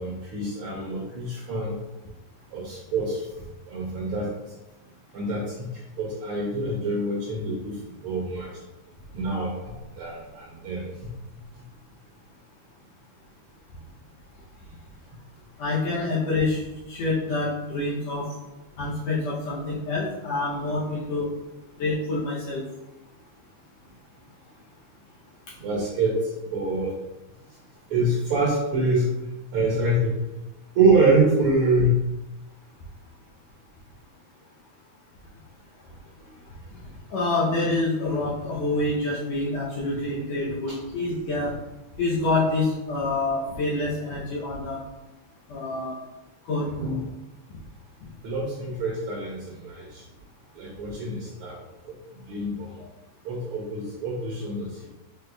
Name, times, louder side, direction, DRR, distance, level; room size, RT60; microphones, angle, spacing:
voice 1, 0.0-1.8 2.5-3.3 3.7-4.5 5.1-8.6 9.1-11.2 11.5-11.6 15.1-15.2 25.6-26.9 27.9-29.1 29.5-30.2 30.7-32.1 40.7-40.8 46.8-47.1 48.2-50.0 50.5-51.6 51.8-52.8 53.2-54.9, right 2 dB, 75° right, -3 dB, 1.3 m, -26 dB
voice 2, 15.6-16.6 16.9-18.3 18.8-21.3 21.8-22.6 37.1-41.5 42.0-44.8 45.5-45.9 46.5-46.7 52.8-52.9, left 2 dB, 70° left, -6 dB, 1.8 m, -27 dB
5.0 x 4.3 x 2.2 m, 1.0 s
omnidirectional pair, 3.3 m